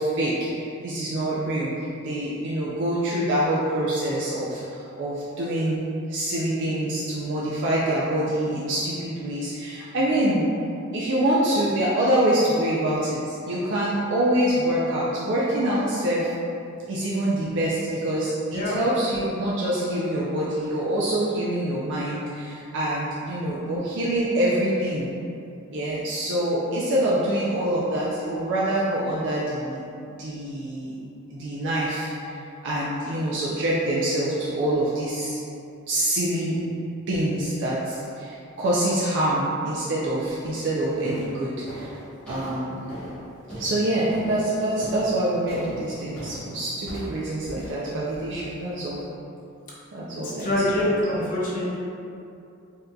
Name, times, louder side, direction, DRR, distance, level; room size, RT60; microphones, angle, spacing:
voice 1, 0.0-1.7 2.0-10.5 10.9-16.3 16.9-25.1 25.7-29.8 30.1-31.0 31.3-35.4 35.9-36.6 37.1-41.9 42.3-42.8 43.5-49.0 49.9-50.5 50.8-50.9, right 1 dB, 55° right, -7 dB, 0.4 m, -25 dB
sound 1, 40.2-40.5 41.0-49.0, equal, 5° left, 0.9 m, -40 dB
voice 2, 50.2-51.8, left 1 dB, 40° left, -6 dB, 0.6 m, -25 dB
3.6 x 2.7 x 2.2 m, 2.6 s
head